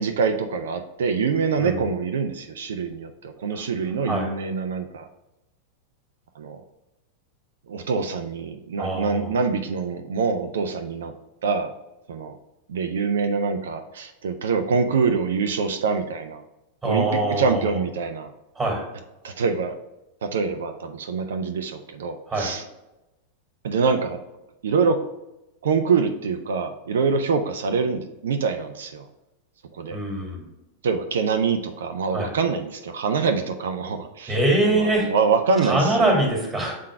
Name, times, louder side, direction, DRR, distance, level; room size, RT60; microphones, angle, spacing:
voice 1, 0.0-5.1 6.4-6.6 7.7-11.1 11.4-11.7 12.1-12.4 12.7-16.4 16.8-17.1 17.4-18.3 19.2-19.8 20.2-22.6 23.6-24.2 24.6-25.0 25.6-29.1 29.8-30.0 30.8-34.4 34.7-36.2, right 5 dB, 60° right, 8 dB, 0.4 m, -25 dB
voice 2, 8.8-9.3 16.8-17.8 18.5-18.8 22.3-22.5 29.9-30.5 32.1-32.3 34.3-35.1 35.6-36.7, right 1 dB, 10° right, -1 dB, 2.1 m, -23 dB
7.5 x 3.8 x 3.4 m, 0.96 s
figure-of-eight pair, 90°, 0 cm